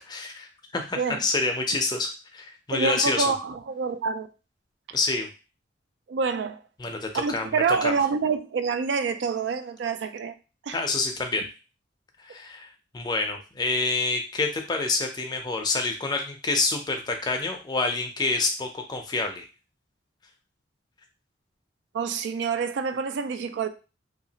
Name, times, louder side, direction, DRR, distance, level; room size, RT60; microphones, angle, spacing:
voice 1, 0.0-3.3 4.9-5.3 6.8-7.9 10.7-11.4 12.2-12.7 12.9-19.5, left 3 dB, 20° left, 0.4 m, -27 dB
voice 2, 2.7-4.3 6.1-6.6 7.1-10.3 10.6-10.8 21.9-23.7, right 5 dB, 65° right, 0.3 m, -27 dB
2.8 x 2.4 x 2.7 m
head